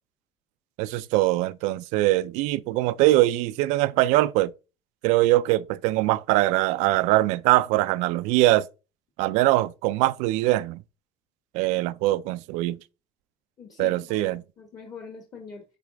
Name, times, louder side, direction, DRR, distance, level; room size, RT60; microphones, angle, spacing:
voice 1, 0.8-4.5 5.0-8.7 9.2-10.8 11.5-12.8 13.8-14.4, right 17 dB, 85° right, 0.4 m, -22 dB
voice 2, 13.6-15.6, left 5 dB, 30° left, 1.3 m, -42 dB
9.7 x 4.1 x 3.4 m
cardioid pair, 170°, 12 cm